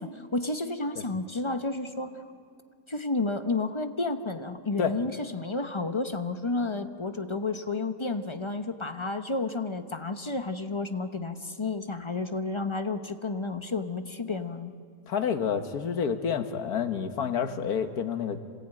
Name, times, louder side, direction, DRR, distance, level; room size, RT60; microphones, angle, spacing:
voice 1, 0.0-2.1 2.9-14.7, left 3 dB, 30° left, 8 dB, 0.5 m, -31 dB
voice 2, 15.1-18.4, left 7 dB, 65° left, 8 dB, 1.7 m, -29 dB
27.0 x 18.5 x 9.0 m, 2.4 s
omnidirectional pair, 1.8 m